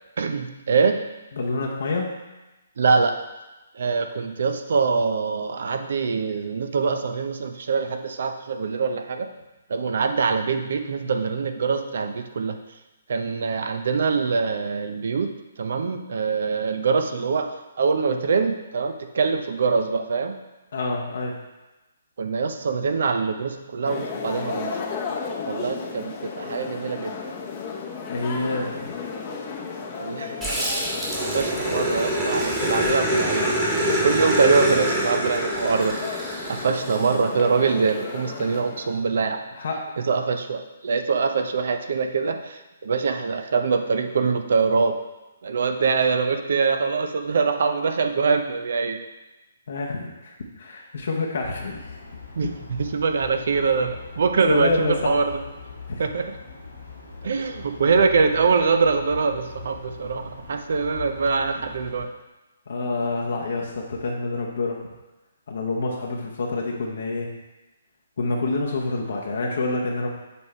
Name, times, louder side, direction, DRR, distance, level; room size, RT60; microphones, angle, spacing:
voice 1, 0.2-1.0 2.8-3.1 3.7-9.3 9.7-12.6 13.1-15.3 15.6-20.4 22.2-24.7 25.5-27.2 30.0-30.6 31.2-33.5 33.9-36.0 36.5-39.4 40.1-44.9 45.4-49.0 52.4-55.2 56.0-56.3 57.2-62.1, right 5 dB, 60° right, 7 dB, 0.5 m, -24 dB
voice 2, 1.3-2.1 20.7-21.4 28.1-28.9 32.3-32.4 39.5-39.8 49.7-52.0 52.4-52.5 54.5-55.1 55.9-56.0 62.7-64.8 65.5-67.3 68.2-70.1, left 3 dB, 65° left, -1 dB, 0.9 m, -27 dB
sound 1, 23.8-39.0, left 5 dB, 35° left, 0.8 m, -34 dB
Growling, 30.4-37.1, right 1 dB, 15° right, 1.5 m, -25 dB
sound 2, 51.4-62.1, left 4 dB, 80° left, 1.8 m, -41 dB
6.9 x 3.3 x 4.3 m, 1.1 s
figure-of-eight pair, 135°, 0 cm